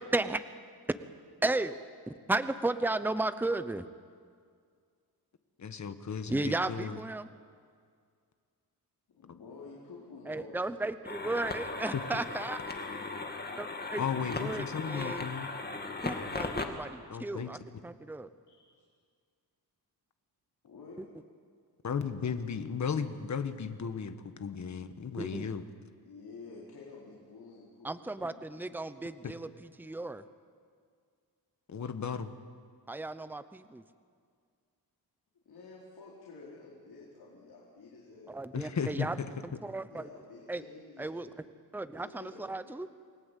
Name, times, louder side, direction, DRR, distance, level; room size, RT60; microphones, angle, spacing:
voice 1, 1.4-1.8 2.3-3.9 6.3-7.3 10.3-12.6 13.6-14.0 14.4-15.3 16.0-18.3 25.2-25.5 27.8-30.2 32.9-33.8 38.3-39.2 39.4-40.1 40.5-40.6 41.0-41.3 41.7-42.9, right 2 dB, 5° right, 12 dB, 0.8 m, -34 dB
voice 2, 5.6-7.0 11.9-12.0 14.0-15.5 17.1-17.5 21.8-25.6 29.2-29.3 31.7-32.3 38.5-39.3, left 6 dB, 45° left, 9 dB, 1.5 m, -35 dB
voice 3, 9.1-10.9 11.3-11.8 18.5-18.8 20.6-21.1 26.0-28.4 35.4-38.4 39.6-41.4 41.9-42.7, left 3 dB, 70° left, -4 dB, 4.6 m, -51 dB
sound 1, 11.0-16.7, left 3 dB, 25° left, 2.2 m, -37 dB
29.0 x 20.5 x 8.3 m, 2.1 s
wide cardioid pair, 135°, 39 cm